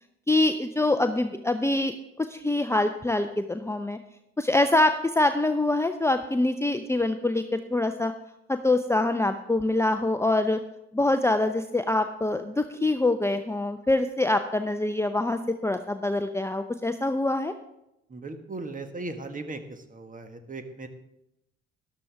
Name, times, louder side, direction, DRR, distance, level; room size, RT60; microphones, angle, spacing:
voice 1, 0.3-4.0 4.4-8.1 8.5-10.6 10.9-17.5, left 2 dB, 10° left, 7 dB, 0.7 m, -25 dB
voice 2, 18.1-20.9, right 2 dB, 25° right, 7 dB, 1.6 m, -38 dB
13.0 x 11.5 x 3.5 m, 0.85 s
hypercardioid pair, 50°, 31 cm